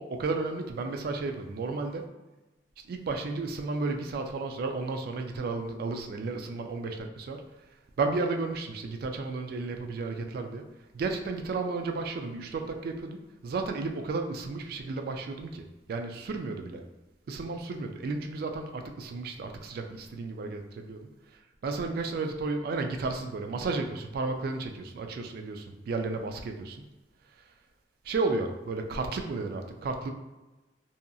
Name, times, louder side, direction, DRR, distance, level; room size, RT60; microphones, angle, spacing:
voice 1, 0.0-2.1 2.8-7.4 8.0-10.7 10.9-16.8 17.3-21.1 21.6-26.8 28.0-30.1, right 3 dB, 55° right, 5 dB, 0.3 m, -33 dB
2.7 x 2.3 x 2.5 m, 1.1 s
head